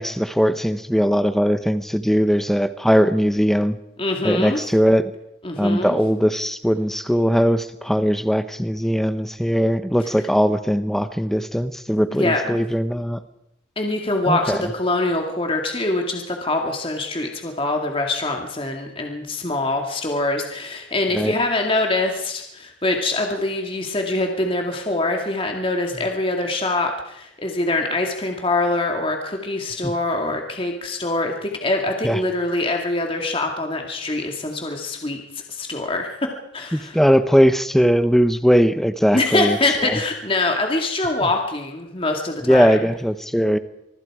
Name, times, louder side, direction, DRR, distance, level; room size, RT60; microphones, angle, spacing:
voice 1, 0.0-3.8 4.2-5.1 5.6-13.2 14.3-14.6 21.1-21.3 29.8-29.9 32.0-32.2 36.7-39.6 39.8-40.0 41.2-41.3 42.4-43.6, equal, ahead, 11 dB, 1.0 m, -19 dB
voice 2, 4.0-4.6 5.4-6.0 12.1-12.6 13.8-35.2 35.5-37.0 39.1-42.9, left 2 dB, 30° left, 2 dB, 2.3 m, -24 dB
25.0 x 23.5 x 4.9 m, 0.81 s
head